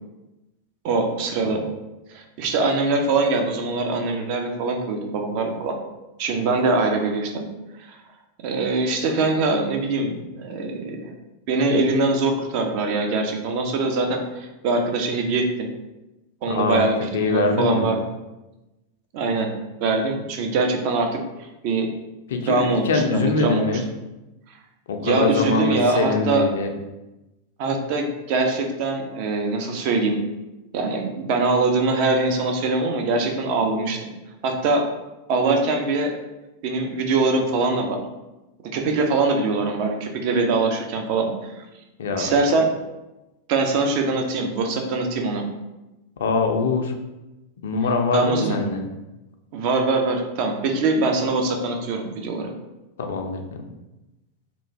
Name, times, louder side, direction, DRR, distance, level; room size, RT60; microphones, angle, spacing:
voice 1, 0.8-1.6 2.1-5.8 6.2-7.4 7.8-8.0 8.4-11.1 11.5-15.7 16.4-18.0 19.1-19.5 19.8-21.2 21.6-21.9 22.5-23.8 25.0-26.4 27.6-30.2 30.7-34.1 34.4-34.9 35.3-36.1 36.6-38.0 38.7-41.6 42.1-42.7 43.5-45.5 48.1-48.6 49.5-52.5, right 3 dB, 45° right, 3 dB, 0.4 m, -23 dB
voice 2, 16.5-16.9 17.1-17.9 22.3-23.8 24.9-26.7 42.0-42.3 46.2-46.9 47.6-48.8 53.0-53.4, left 4 dB, 60° left, 4 dB, 0.3 m, -23 dB
3.0 x 2.4 x 2.6 m, 1.0 s
figure-of-eight pair, 90°, 0 cm